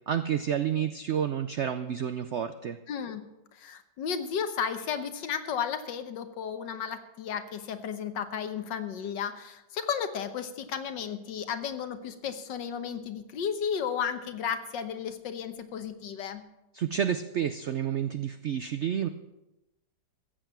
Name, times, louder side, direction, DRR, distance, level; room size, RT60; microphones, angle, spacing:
voice 1, 0.1-2.8 16.7-19.1, right 9 dB, 85° right, 10 dB, 0.6 m, -30 dB
voice 2, 2.9-16.4, left 7 dB, 75° left, 9 dB, 1.7 m, -34 dB
14.5 x 8.0 x 7.3 m, 0.95 s
omnidirectional pair, 2.0 m